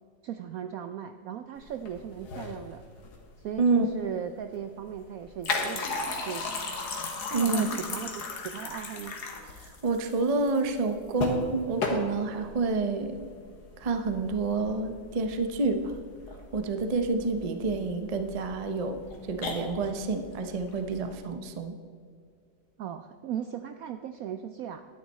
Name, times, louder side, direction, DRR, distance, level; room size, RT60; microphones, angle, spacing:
voice 1, 0.2-2.8 3.4-6.6 7.3-9.2 22.8-25.0, right 9 dB, 75° right, 8 dB, 0.8 m, -37 dB
sound 1, 1.6-21.1, left 3 dB, 60° left, 1.8 m, -37 dB
voice 2, 7.3-7.8 9.6-13.2 13.8-15.8 16.5-19.0 19.3-21.7, right 3 dB, 45° right, 7 dB, 0.5 m, -28 dB
12.5 x 9.2 x 4.2 m, 2.1 s
omnidirectional pair, 1.9 m